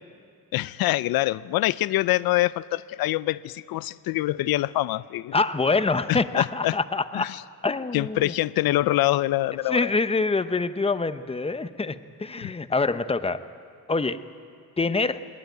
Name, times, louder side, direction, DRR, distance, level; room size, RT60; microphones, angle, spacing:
voice 1, 0.5-5.3 6.1-6.7 7.1-7.3 7.9-9.9 12.4-12.5, left 16 dB, 85° left, 0.5 m, -25 dB
voice 2, 5.3-7.3 7.6-8.3 8.9-9.0 9.7-13.4 13.9-14.2 14.8-15.2, left 3 dB, 15° left, 0.7 m, -25 dB
21.0 x 19.5 x 9.3 m
cardioid pair, 120°, 35 cm